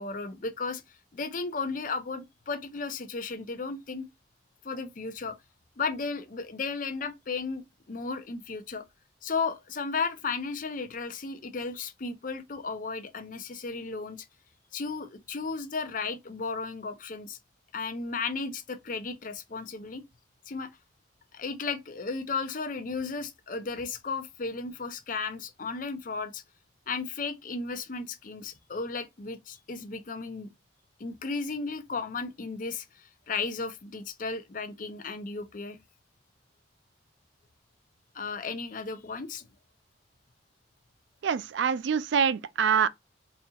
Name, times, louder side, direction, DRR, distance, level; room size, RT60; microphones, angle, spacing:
voice 1, 0.0-4.1 4.6-5.4 5.8-8.8 9.2-14.3 14.7-17.4 17.7-20.0 20.5-20.7 21.3-26.4 26.9-30.5 31.0-35.8 38.1-39.5, left 4 dB, 45° left, 0.5 m, -34 dB
voice 2, 41.2-42.9, right 7 dB, 70° right, 0.3 m, -25 dB
4.0 x 2.8 x 2.3 m
head